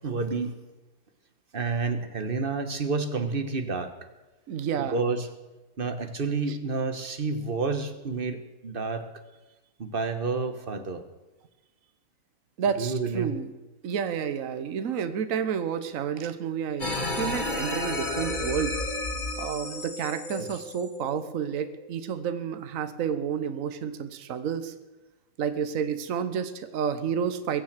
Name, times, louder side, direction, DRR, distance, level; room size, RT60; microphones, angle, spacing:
voice 1, 0.0-0.6 1.5-3.9 4.9-5.3 5.8-9.1 9.8-11.0 12.8-13.3 20.4-20.5, right 4 dB, 35° right, 8 dB, 1.2 m, -29 dB
voice 2, 4.5-5.0 12.6-13.5 13.8-18.8 19.4-24.7 25.4-27.6, right 7 dB, 55° right, 10 dB, 1.3 m, -30 dB
sound 1, 16.8-21.7, left 2 dB, 30° left, 1.8 m, -32 dB
22.0 x 7.5 x 7.5 m, 1.1 s
omnidirectional pair, 1.8 m